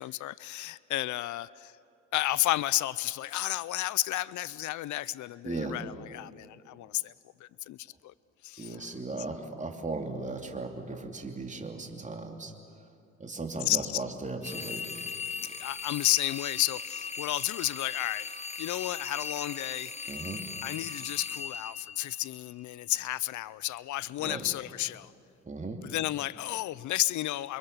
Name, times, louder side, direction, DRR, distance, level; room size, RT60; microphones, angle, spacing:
voice 1, 0.0-1.7 2.1-7.1 7.4-8.1 8.4-8.8 13.6-14.0 15.4-18.3 18.6-19.9 20.6-25.1 25.8-27.6, left 15 dB, 75° left, 19 dB, 0.5 m, -32 dB
voice 2, 5.4-5.8 8.6-12.5 13.2-14.9 20.1-20.4 24.2-24.5 25.4-25.8, right 3 dB, 25° right, 4 dB, 2.8 m, -37 dB
sound 1, 14.4-22.6, left 5 dB, 20° left, 1.3 m, -39 dB
29.0 x 24.0 x 6.8 m, 2.6 s
cardioid pair, 90°, 30 cm